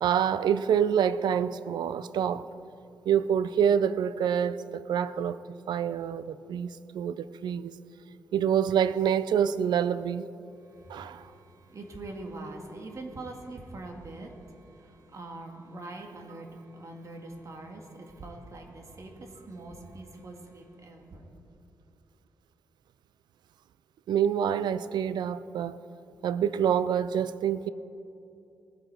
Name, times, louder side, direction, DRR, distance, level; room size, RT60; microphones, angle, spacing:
voice 1, 0.0-2.5 3.1-5.4 5.7-7.7 8.3-10.3 10.9-11.3 24.1-25.8 26.2-27.7, right 8 dB, 85° right, 15 dB, 0.4 m, -26 dB
voice 2, 10.6-21.3, right 2 dB, 45° right, 3 dB, 1.8 m, -43 dB
19.5 x 7.9 x 4.5 m, 2.7 s
cardioid pair, 90°, 7 cm